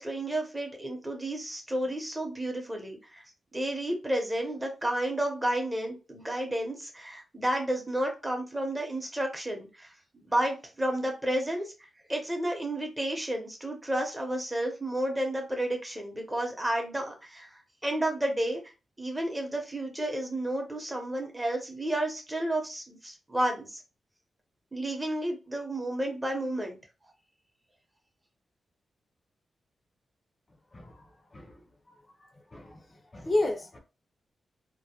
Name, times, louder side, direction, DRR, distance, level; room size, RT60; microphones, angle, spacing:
voice 1, 0.0-3.2 3.5-9.9 10.1-11.7 12.1-18.6 19.0-23.8 24.7-26.8, right 1 dB, 15° right, 0.7 m, -31 dB
voice 2, 33.1-33.8, left 2 dB, 30° left, 0.5 m, -30 dB
2.2 x 2.0 x 2.8 m
cardioid pair, 80°, 0 cm